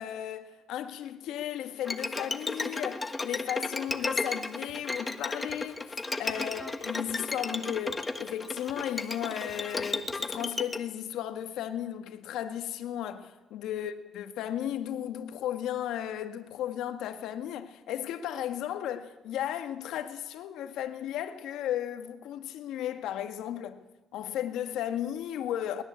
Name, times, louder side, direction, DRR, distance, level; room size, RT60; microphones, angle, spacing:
voice 1, 0.0-23.8 24.1-25.8, left 10 dB, 80° left, 1.8 m, -35 dB
Bowed string instrument, 1.8-10.8, left 3 dB, 15° left, 1.4 m, -34 dB
sound 1, 3.9-8.8 9.1-10.2, right 5 dB, 60° right, 5.0 m, -60 dB
22.0 x 20.5 x 8.4 m
cardioid pair, 150°, 0 cm